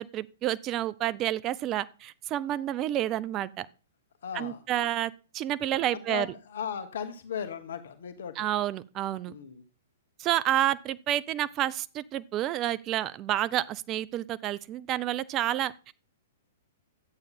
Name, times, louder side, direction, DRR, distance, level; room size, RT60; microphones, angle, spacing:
voice 1, 0.0-3.7 4.3-6.3 8.4-9.3 10.2-15.9, right 13 dB, 30° right, 0.5 m, -29 dB
voice 2, 4.2-4.9 5.9-8.5 9.3-9.6, left 8 dB, 65° left, 1.3 m, -37 dB
11.0 x 8.7 x 4.3 m
hypercardioid pair, 115°, 0 cm